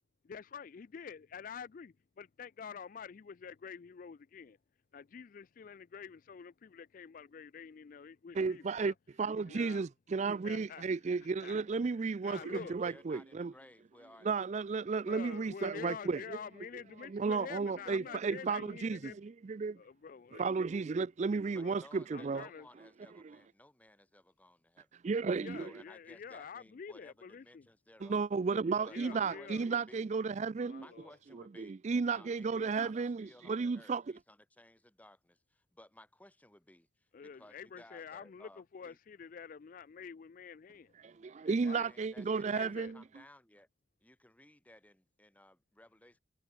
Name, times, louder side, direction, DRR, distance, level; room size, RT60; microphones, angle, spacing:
voice 1, 0.2-4.6 4.9-8.9 9.5-9.9 10.2-10.8 11.4-11.6 12.2-12.8 15.1-19.2 19.8-20.5 21.6-21.8 22.1-22.7 25.4-27.7 28.9-29.7 30.7-31.1 37.1-40.9 41.7-41.9 42.5-42.9, left 6 dB, 40° left, 0.3 m, -48 dB
voice 2, 8.3-13.5 14.2-16.4 17.1-19.8 20.3-22.5 23.2-23.4 25.0-25.7 28.0-30.8 31.6-34.0 41.0-43.0, right 4 dB, 35° right, 0.3 m, -33 dB
voice 3, 12.4-14.4 21.5-25.0 25.6-28.3 28.8-30.1 30.8-31.8 32.0-39.0 41.4-43.7 44.0-46.2, left 1 dB, 10° left, 1.4 m, -59 dB
head